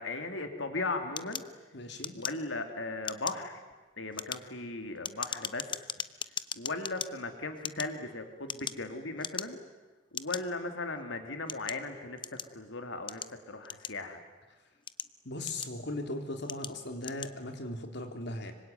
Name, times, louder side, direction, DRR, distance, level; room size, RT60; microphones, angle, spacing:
voice 1, 0.0-1.4 2.1-3.6 4.0-5.6 6.5-9.6 10.1-14.2, left 3 dB, 85° left, 6 dB, 2.9 m, -37 dB
sound 1, 1.2-2.7 3.0-3.5 4.0-7.1 7.6-8.9 9.2-9.7 10.1-10.4 11.1-12.6 13.1-14.2 14.7-15.9 16.4-16.7 17.0-17.3, left 7 dB, 25° left, 0.8 m, -39 dB
voice 2, 1.7-2.1 15.3-18.5, left 1 dB, 65° left, 5 dB, 3.6 m, -38 dB
25.5 x 25.0 x 9.4 m, 1.2 s
head